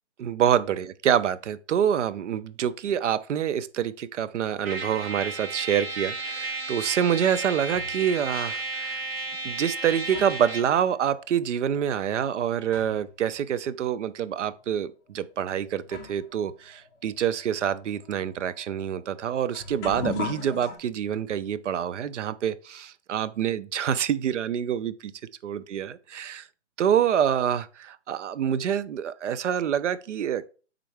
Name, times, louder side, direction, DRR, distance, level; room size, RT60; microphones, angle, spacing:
voice 1, 0.2-9.0 9.4-25.1 25.4-26.5 26.8-30.4, right 9 dB, 80° right, 0.5 m, -26 dB
Trumpet, 4.6-10.8, right 3 dB, 60° right, 1.3 m, -33 dB
sound 1, 7.7-8.1 9.0-9.1 9.7-13.2 13.5-13.6 14.4-14.6 15.4-15.5 15.8-20.8, left 5 dB, 15° left, 0.8 m, -40 dB
4.4 x 3.7 x 3.3 m
hypercardioid pair, 160°, 36 cm